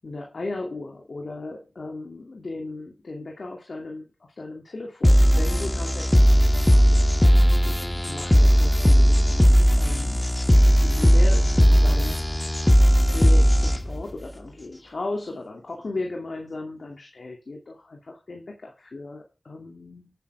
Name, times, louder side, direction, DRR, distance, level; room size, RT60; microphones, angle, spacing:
voice 1, 0.0-6.1 6.6-10.3 10.7-12.2 13.1-20.1, left 2 dB, 80° left, 2 dB, 2.4 m, -36 dB
sound 1, 5.0-14.0, equal, 15° left, 1.3 m, -17 dB
11.0 x 9.3 x 3.4 m, 0.31 s
wide cardioid pair, 45°, 0 cm